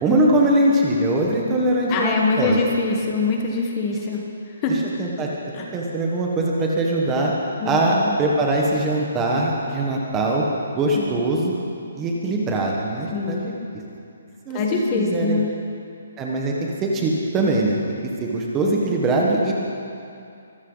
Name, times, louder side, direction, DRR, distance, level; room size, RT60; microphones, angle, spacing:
voice 1, 0.0-2.6 4.7-5.3 5.7-10.4 10.7-11.5 12.0-13.5 14.5-15.4 16.2-17.8 18.2-19.5, right 1 dB, 10° right, -2 dB, 1.4 m, -22 dB
voice 2, 1.9-4.2 4.6-4.7 5.6-5.7 7.6-8.2 10.9-11.2 13.1-13.5 14.5-15.5, left 4 dB, 20° left, 1 dB, 1.4 m, -23 dB
24.0 x 14.0 x 4.0 m, 2.5 s
hypercardioid pair, 175°, 0 cm